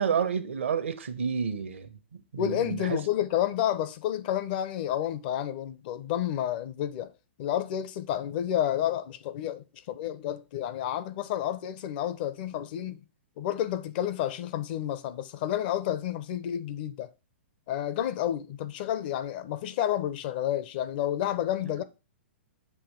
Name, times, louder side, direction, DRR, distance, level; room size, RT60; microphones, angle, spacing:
voice 1, 0.0-3.0, right 7 dB, 75° right, 1.1 m, -30 dB
voice 2, 2.4-7.1 7.4-13.0 13.4-17.1 17.7-21.8, left 11 dB, 50° left, 0.7 m, -30 dB
7.0 x 2.8 x 5.3 m
hypercardioid pair, 115°, 7 cm